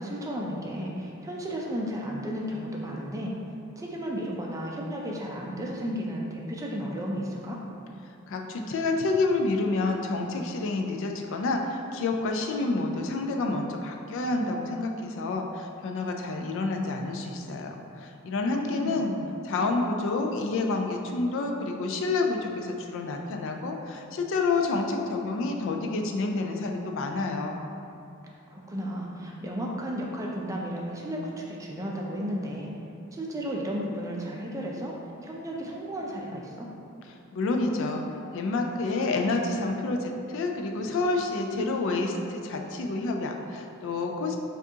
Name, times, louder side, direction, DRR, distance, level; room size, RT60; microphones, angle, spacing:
voice 1, 0.0-3.3 3.8-7.6 18.7-19.3 28.5-32.7 33.1-34.9 35.2-36.7, equal, 15° right, -2 dB, 0.4 m, -33 dB
voice 2, 8.3-19.1 19.4-27.6 37.3-44.4, left 3 dB, 65° left, 3 dB, 0.4 m, -29 dB
6.0 x 2.4 x 2.7 m, 2.6 s
head